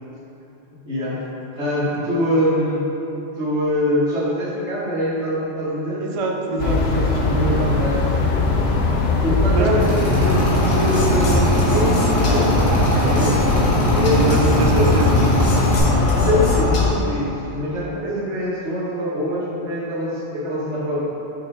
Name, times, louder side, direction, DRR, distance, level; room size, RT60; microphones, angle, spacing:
voice 1, 0.7-1.2 1.5-2.8 3.3-6.0 7.8-8.0 9.2-15.0 16.1-21.0, equal, 70° right, -8 dB, 1.7 m, -24 dB
voice 2, 5.9-7.8 9.5-10.0 14.1-15.6, right 4 dB, 55° right, 2 dB, 0.3 m, -25 dB
sound 1, 6.6-16.6, left 3 dB, 65° left, 0.8 m, -20 dB
Drill, 9.8-15.8, right 2 dB, 15° right, 1.3 m, -23 dB
sound 2, 10.2-16.9, left 2 dB, 90° left, 1.2 m, -23 dB
6.7 x 3.2 x 4.6 m, 2.9 s
omnidirectional pair, 1.2 m